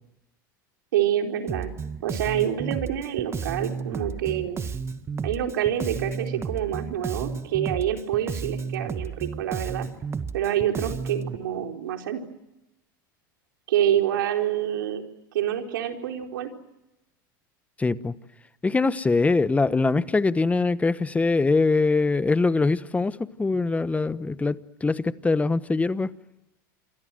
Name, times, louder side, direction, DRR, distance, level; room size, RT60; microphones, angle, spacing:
voice 1, 0.9-1.7 2.0-4.6 5.2-9.9 10.3-12.2 13.7-15.0 15.3-16.5, right 10 dB, 80° right, 4.3 m, -27 dB
Bass guitar, 1.5-11.4, right 5 dB, 25° right, 1.8 m, -32 dB
voice 2, 17.8-18.1 18.6-26.1, left 3 dB, 10° left, 1.1 m, -23 dB
28.5 x 23.5 x 7.8 m
hypercardioid pair, 100°, 11 cm